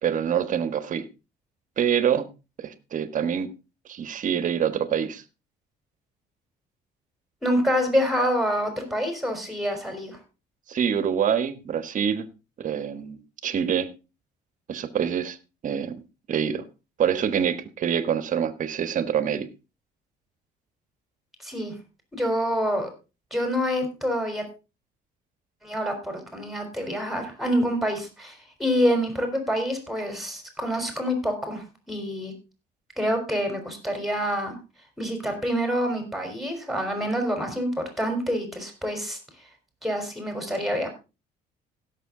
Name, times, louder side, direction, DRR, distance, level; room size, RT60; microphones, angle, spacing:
voice 1, 0.0-1.0 1.8-2.3 2.6-3.5 3.9-5.2 10.7-12.3 12.6-13.9 14.7-15.4 15.6-16.0 16.3-16.6 17.0-19.5, right 8 dB, 50° right, 12 dB, 1.4 m, -25 dB
voice 2, 7.4-10.2 21.4-21.7 22.1-22.9 23.3-24.4 25.6-32.3 33.0-34.6 35.0-39.2 39.8-40.9, equal, ahead, 5 dB, 3.8 m, -27 dB
16.5 x 6.7 x 3.8 m, 0.29 s
cardioid pair, 110°, 17 cm